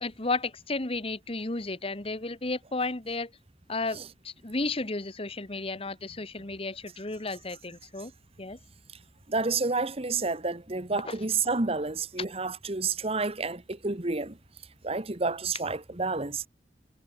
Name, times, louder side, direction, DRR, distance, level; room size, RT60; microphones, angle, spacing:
voice 1, 0.0-3.3 3.7-8.1 8.4-8.6 11.0-11.2, left 3 dB, 35° left, 1.4 m, -33 dB
voice 2, 9.3-14.4 14.8-16.5, right 3 dB, 35° right, 1.4 m, -29 dB
head